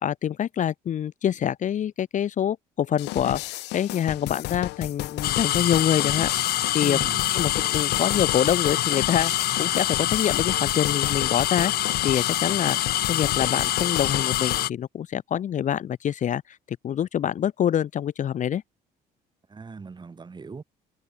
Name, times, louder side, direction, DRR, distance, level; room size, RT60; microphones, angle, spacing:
voice 1, 0.0-7.0 7.3-11.7 12.0-18.6, left 9 dB, 50° left, 1.1 m, -26 dB
sound 1, 3.0-14.7, left 20 dB, 85° left, 1.0 m, -34 dB
sound 2, 5.2-14.7, left 14 dB, 65° left, 1.4 m, -25 dB
voice 2, 6.8-7.2 12.7-12.8 19.5-20.6, right 4 dB, 25° right, 6.8 m, -39 dB
cardioid pair, 110°, 17 cm